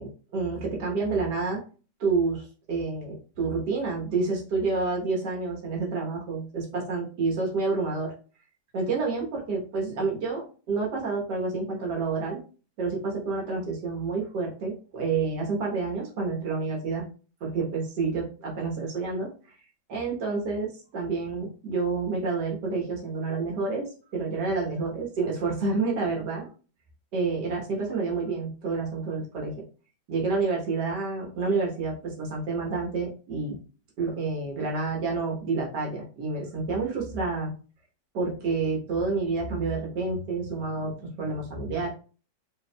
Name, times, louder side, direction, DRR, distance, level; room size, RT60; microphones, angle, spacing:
voice 1, 0.0-1.6 2.0-8.1 8.7-12.4 12.8-17.0 17.4-19.3 19.9-26.5 27.1-29.6 30.1-33.6 34.0-37.5 38.1-41.9, right 4 dB, 80° right, -1 dB, 1.8 m, -29 dB
4.6 x 3.5 x 2.2 m, 0.37 s
omnidirectional pair, 1.8 m